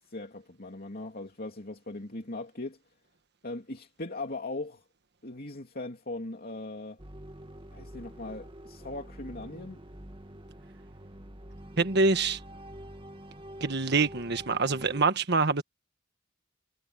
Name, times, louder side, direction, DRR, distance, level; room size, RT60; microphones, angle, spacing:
voice 1, 0.0-2.8 3.4-4.8 5.2-7.0 7.7-9.8, left 2 dB, 50° left, 2.8 m, -39 dB
sound 1, 7.0-15.0, right 1 dB, 25° right, 1.7 m, -46 dB
voice 2, 11.8-12.4 13.6-15.6, right 4 dB, 55° right, 1.4 m, -25 dB
head